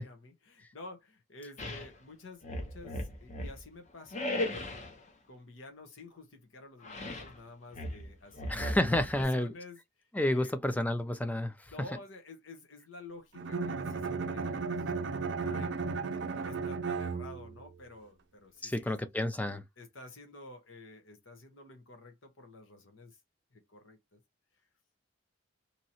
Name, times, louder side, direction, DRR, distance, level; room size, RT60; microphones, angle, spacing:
voice 1, 0.0-4.7 5.3-9.8 10.3-10.5 11.7-15.7 16.3-19.0 19.8-23.2 23.5-24.2, left 2 dB, 75° left, 0.9 m, -51 dB
sound 1, 1.6-1.9 2.4-3.6 4.1-5.0 6.8-7.4 7.7-9.2, left 1 dB, 35° left, 0.7 m, -37 dB
voice 2, 8.5-9.5 10.1-11.5 18.6-19.6, left 1 dB, 10° left, 0.3 m, -30 dB
Bowed string instrument, 13.3-17.7, right 4 dB, 60° right, 0.5 m, -35 dB
2.9 x 2.7 x 2.7 m
head